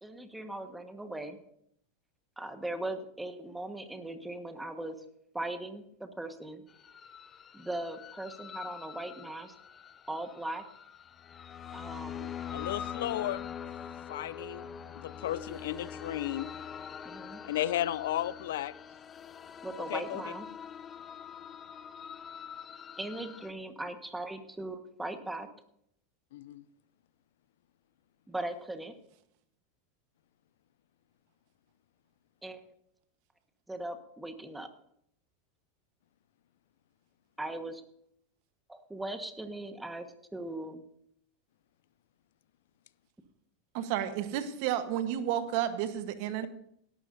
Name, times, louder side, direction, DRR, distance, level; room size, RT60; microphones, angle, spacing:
voice 1, 0.0-1.4 2.4-5.0 5.3-6.6 7.5-9.5 10.1-10.6 11.7-12.3 17.0-17.4 19.6-20.5 23.0-25.5 28.3-28.9 32.4-32.6 33.7-34.7 37.4-37.8 38.7-40.1 40.3-40.8, right 1 dB, 5° right, 7 dB, 1.5 m, -39 dB
sound 1, 6.7-23.5, left 8 dB, 30° left, 0.6 m, -44 dB
voice 2, 12.5-13.5 14.1-14.7 15.0-16.5 17.4-18.7 19.9-20.3 26.3-26.6, left 13 dB, 80° left, 19 dB, 0.4 m, -34 dB
voice 3, 43.7-46.5, right 11 dB, 60° right, 10 dB, 1.2 m, -31 dB
17.5 x 12.0 x 2.7 m, 0.71 s
hypercardioid pair, 110°, 0 cm